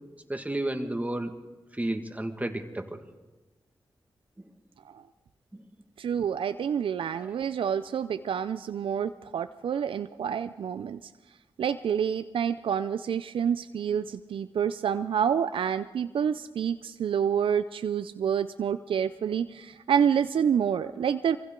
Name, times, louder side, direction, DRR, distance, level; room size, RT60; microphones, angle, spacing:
voice 1, 0.3-1.4 1.7-3.0 5.5-5.6 7.2-7.3, right 1 dB, 15° right, 5 dB, 1.8 m, -32 dB
voice 2, 6.0-11.1 11.6-21.4, right 8 dB, 85° right, 11 dB, 0.4 m, -28 dB
23.0 x 15.5 x 3.8 m, 1.1 s
cardioid pair, 55°, 9 cm